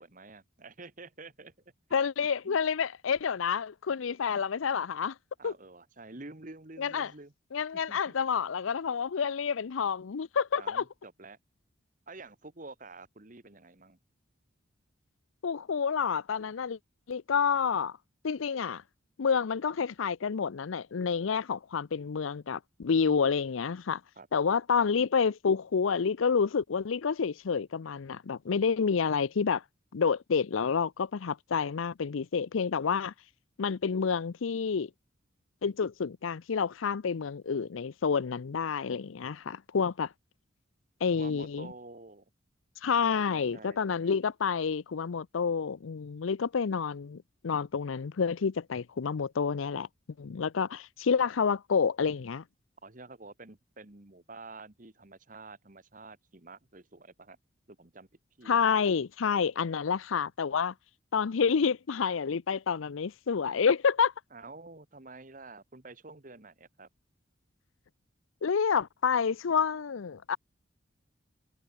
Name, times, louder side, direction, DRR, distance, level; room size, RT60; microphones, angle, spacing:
voice 1, 0.0-1.5 2.4-2.6 5.4-7.3 7.7-8.1 10.6-11.4 12.1-14.0 24.1-24.3 41.1-42.2 43.0-44.1 52.8-57.4 57.7-58.1 58.4-58.7 64.3-66.9, right 3 dB, 40° right, 1.5 m, -49 dB
voice 2, 1.9-5.1 5.4-5.5 6.8-7.1 7.5-10.8 15.4-16.8 17.1-17.9 18.2-18.8 19.2-24.0 24.3-29.6 29.9-33.1 33.6-34.9 35.6-40.1 41.0-41.7 42.8-49.9 50.2-52.4 58.5-60.7 61.1-64.1 68.4-70.4, left 6 dB, 85° left, 0.5 m, -29 dB
head